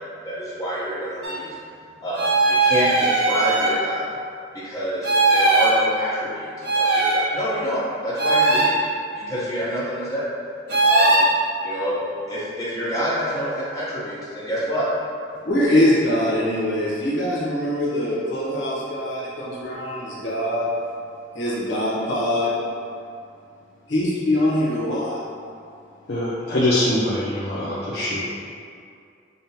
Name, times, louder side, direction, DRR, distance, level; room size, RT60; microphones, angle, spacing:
voice 1, 0.0-1.5 2.0-4.1 4.6-8.7 9.1-10.2 10.8-11.3 11.6-12.0 12.3-14.9, equal, 15° left, -10 dB, 0.8 m, -27 dB
sound 1, 1.2-1.3 2.2-3.8 5.0-5.8 6.6-7.2 8.2-8.7 10.7-11.3, right 2 dB, 55° right, 0.6 m, -18 dB
voice 2, 15.4-20.7 21.3-22.5 23.9-25.2, left 1 dB, 70° left, -7 dB, 0.9 m, -23 dB
voice 3, 26.1-28.2, left 1 dB, 55° left, -9 dB, 0.5 m, -23 dB
5.2 x 2.1 x 2.8 m, 2.4 s
head